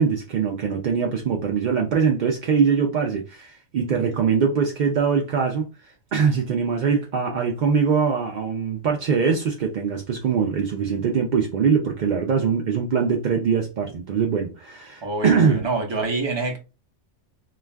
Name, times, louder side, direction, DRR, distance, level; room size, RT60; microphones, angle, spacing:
voice 1, 0.0-5.7 6.1-15.6, right 6 dB, 70° right, 0.4 m, -22 dB
voice 2, 15.0-16.6, right 3 dB, 30° right, 0.6 m, -26 dB
2.3 x 2.3 x 3.2 m
omnidirectional pair, 1.3 m